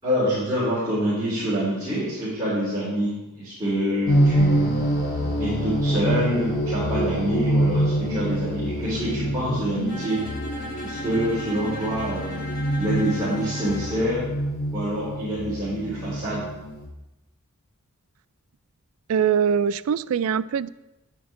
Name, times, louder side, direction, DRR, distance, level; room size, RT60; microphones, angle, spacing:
voice 1, 0.0-4.7 5.4-10.2 10.8-12.4 12.7-14.3 14.7-16.5, equal, 15° right, -12 dB, 3.8 m, -26 dB
sound 1, 4.1-16.8, right 1 dB, 55° left, 3.5 m, -26 dB
Bowed string instrument, 9.9-14.1, left 1 dB, 40° left, 1.9 m, -36 dB
voice 2, 19.1-20.7, right 7 dB, 70° right, 16 dB, 0.3 m, -22 dB
10.5 x 9.1 x 3.7 m, 0.98 s
head